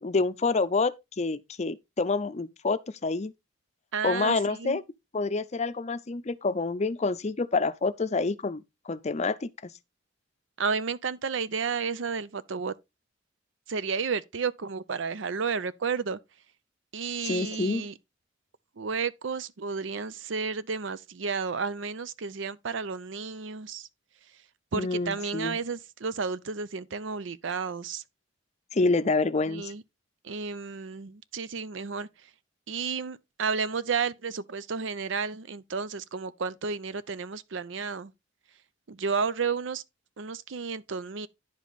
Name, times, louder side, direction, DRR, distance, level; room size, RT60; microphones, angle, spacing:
voice 1, 0.0-3.3 4.0-4.8 5.1-9.7 17.2-17.9 24.7-25.6 28.7-29.7, left 3 dB, 35° left, 0.5 m, -28 dB
voice 2, 3.9-4.8 10.6-12.7 13.7-16.2 16.9-17.9 18.8-23.9 24.7-28.0 29.5-29.8 30.2-32.1 32.7-38.1 38.9-39.8 40.2-41.3, right 5 dB, 75° right, 0.6 m, -32 dB
10.5 x 5.1 x 4.0 m
head